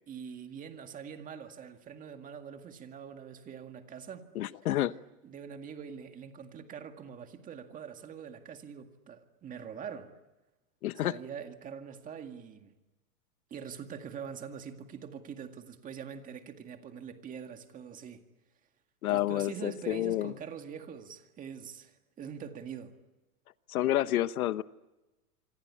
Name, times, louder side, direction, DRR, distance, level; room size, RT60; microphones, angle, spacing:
voice 1, 0.1-4.2 5.2-10.1 11.0-12.7 13.5-18.2 19.1-22.9, right 7 dB, 20° right, 2.0 m, -44 dB
voice 2, 4.3-4.9 10.8-11.2 19.0-20.3 23.7-24.6, left 14 dB, 75° left, 1.1 m, -29 dB
27.0 x 25.5 x 8.5 m
supercardioid pair, 155°, 44 cm